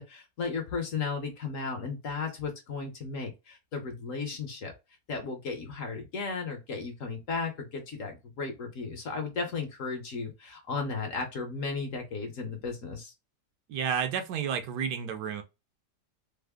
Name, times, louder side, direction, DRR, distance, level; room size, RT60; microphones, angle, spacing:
voice 1, 0.0-4.7 5.1-13.1, left 4 dB, 55° left, 1.1 m, -35 dB
voice 2, 13.7-15.4, right 7 dB, 80° right, 1.2 m, -31 dB
3.5 x 2.0 x 3.4 m
omnidirectional pair, 1.8 m